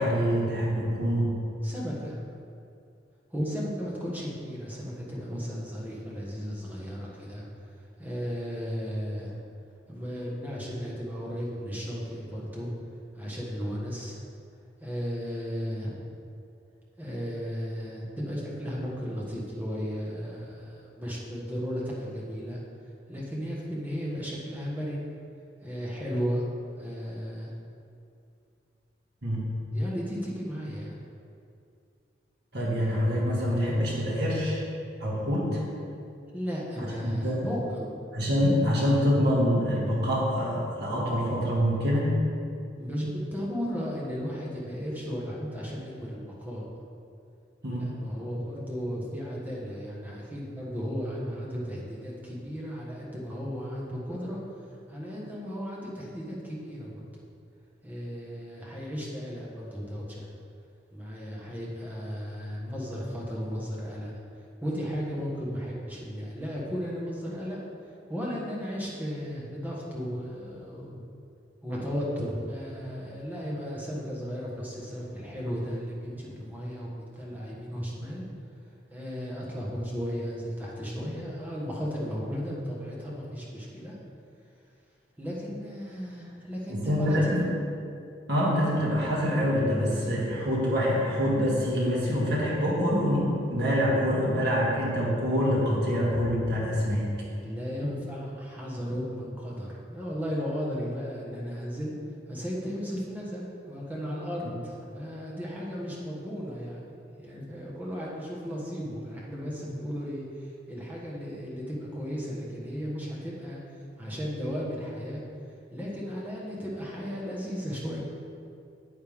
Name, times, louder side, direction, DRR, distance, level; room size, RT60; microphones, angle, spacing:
voice 1, 0.0-1.3 29.2-29.4 32.5-34.6 35.0-35.6 36.8-37.4 38.1-42.2 47.6-47.9 86.7-87.5 88.3-97.1, equal, 60° right, -5 dB, 2.2 m, -25 dB
voice 2, 1.6-2.2 3.3-7.4 8.0-9.4 9.9-12.7 13.1-14.2 14.8-16.0 17.0-22.6 23.1-25.1 25.6-26.5 26.8-27.5 29.7-30.9 36.3-37.9 42.7-46.6 47.6-54.4 54.9-57.2 57.8-60.3 60.9-64.1 64.6-67.6 68.1-71.0 71.6-78.3 78.9-83.9 85.2-87.3 97.4-101.9 102.3-113.6 114.0-115.2 115.7-118.0, equal, 10° right, -5 dB, 1.4 m, -35 dB
9.7 x 8.8 x 3.6 m, 2.5 s
head